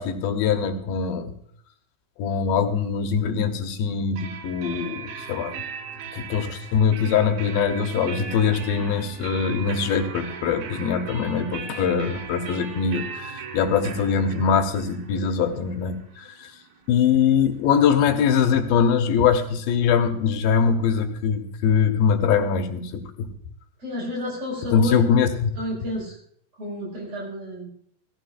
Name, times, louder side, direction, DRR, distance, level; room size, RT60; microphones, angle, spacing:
voice 1, 0.0-1.3 2.2-5.6 6.1-16.5 16.9-23.3 24.7-25.5, left 6 dB, 85° left, 6 dB, 2.8 m, -22 dB
sound 1, 4.2-17.7, right 6 dB, 85° right, 3.0 m, -38 dB
voice 2, 23.8-25.1 25.6-26.2 26.5-27.7, left 1 dB, 45° right, -3 dB, 6.5 m, -30 dB
17.5 x 14.5 x 2.5 m, 0.64 s
omnidirectional pair, 4.1 m